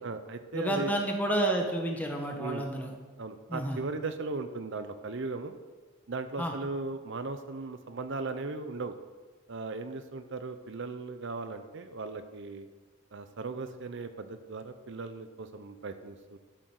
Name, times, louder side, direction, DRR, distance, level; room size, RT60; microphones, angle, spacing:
voice 1, 0.0-0.9 2.4-2.7 3.2-5.6 6.1-9.0 9.5-12.7 13.1-16.4, right 3 dB, 55° right, 9 dB, 0.7 m, -37 dB
voice 2, 0.5-2.9 3.5-3.8 6.4-6.5, right 1 dB, 10° left, 1 dB, 1.6 m, -30 dB
11.5 x 8.3 x 6.5 m, 1.3 s
head